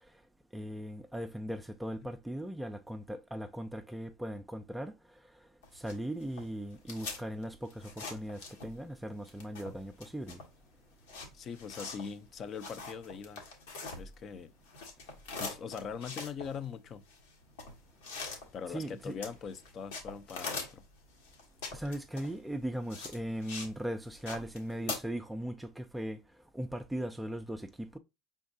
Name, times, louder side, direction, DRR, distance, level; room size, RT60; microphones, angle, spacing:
voice 1, 0.5-4.9 5.7-10.4 18.7-19.2 21.7-26.2 26.5-28.0, equal, 5° right, 0.4 m, -38 dB
sound 1, 5.6-8.9 9.2-14.4 14.6-23.8 24.0-25.0, left 3 dB, 85° left, 1.4 m, -43 dB
voice 2, 11.3-13.4 13.9-14.5 15.4-17.0 18.5-20.8, left 6 dB, 40° left, 0.5 m, -41 dB
5.1 x 3.6 x 2.6 m
supercardioid pair, 95°, 0 cm